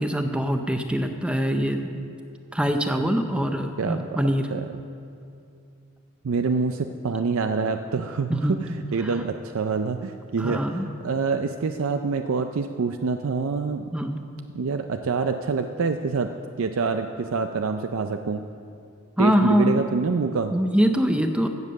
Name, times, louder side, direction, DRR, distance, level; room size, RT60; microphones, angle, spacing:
voice 1, 0.0-1.9 2.5-4.5 8.3-8.5 10.4-10.9 13.9-14.2 19.2-19.8 20.5-21.5, equal, 5° right, 6 dB, 0.6 m, -23 dB
voice 2, 3.8-4.6 6.2-10.6 11.0-14.1 14.5-16.3 16.6-18.4 19.2-20.5, right 4 dB, 75° right, 7 dB, 0.5 m, -26 dB
16.0 x 7.3 x 6.5 m, 2.5 s
head